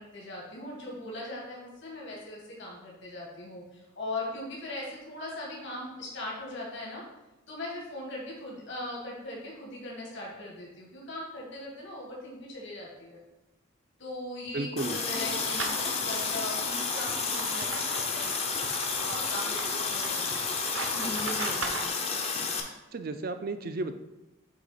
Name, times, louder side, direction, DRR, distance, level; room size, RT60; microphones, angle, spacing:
voice 1, 0.0-7.0 7.5-13.2 14.0-18.4 19.0-20.3 20.9-22.0, left 1 dB, 60° left, -4 dB, 1.7 m, -39 dB
voice 2, 14.5-15.0 22.9-23.9, right 3 dB, 45° right, 9 dB, 0.4 m, -33 dB
Water tap faucet, 14.8-22.6, left 5 dB, 30° left, 0.6 m, -31 dB
sound 1, 15.1-21.9, right 3 dB, 70° right, 0.8 m, -38 dB
7.8 x 3.0 x 4.9 m, 1.0 s
head